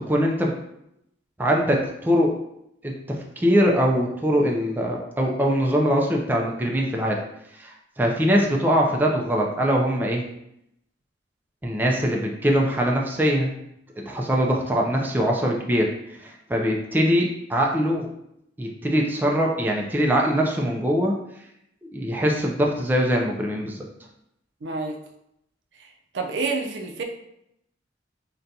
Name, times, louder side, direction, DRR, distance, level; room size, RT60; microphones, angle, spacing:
voice 1, 0.1-0.5 1.4-2.3 2.8-7.2 7.6-10.2 11.6-13.5 14.0-15.9 16.2-18.1 18.6-21.1 21.9-23.8, equal, 10° right, -1 dB, 0.3 m, -22 dB
voice 2, 24.6-25.0 25.8-27.0, right 3 dB, 75° right, 3 dB, 0.4 m, -29 dB
3.9 x 2.2 x 2.6 m, 0.79 s
head